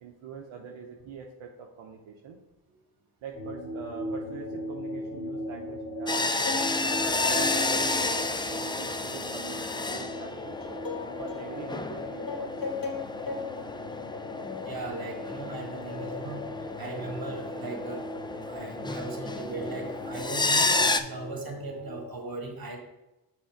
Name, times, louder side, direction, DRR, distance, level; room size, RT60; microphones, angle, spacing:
voice 1, 0.0-2.4 3.2-6.4 7.0-10.6 11.2-12.7, right 6 dB, 80° right, 1 dB, 0.8 m, -43 dB
sound 1, 3.3-22.1, left 1 dB, 10° right, 2.3 m, -39 dB
sound 2, 6.1-21.0, left 3 dB, 10° left, 0.4 m, -31 dB
sound 3, 6.5-9.3 9.6-11.5 12.0-13.6 13.9-14.0, left 4 dB, 45° left, 1.4 m, -37 dB
voice 2, 14.6-16.4 16.8-18.1 18.4-22.8, right 3 dB, 50° right, 2 dB, 1.8 m, -38 dB
6.2 x 3.6 x 5.0 m, 0.99 s
supercardioid pair, 40°, 47 cm